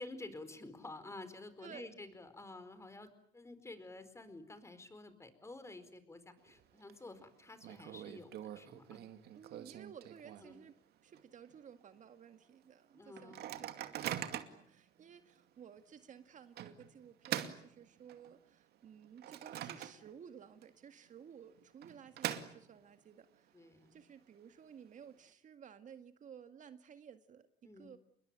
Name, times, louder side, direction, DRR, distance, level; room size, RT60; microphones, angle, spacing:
voice 1, 0.0-9.0 10.4-10.6 12.9-13.7 23.5-23.9 27.6-27.9, left 2 dB, 15° left, 12 dB, 4.5 m, -51 dB
Microwave oven, 6.4-6.9 7.2-7.3 7.6-10.7 11.1-11.2 11.5-11.8 12.3-12.4 13.2-14.7 15.3-15.4 16.6-18.4 18.8-20.3 20.6-20.7 21.6-23.0, right 11 dB, 70° right, 2.3 m, -43 dB
voice 2, 9.4-10.8 11.0-23.5 23.9-28.0, right 8 dB, 50° right, 9 dB, 2.0 m, -55 dB
28.5 x 21.5 x 9.1 m, 0.65 s
cardioid pair, 110°, 17 cm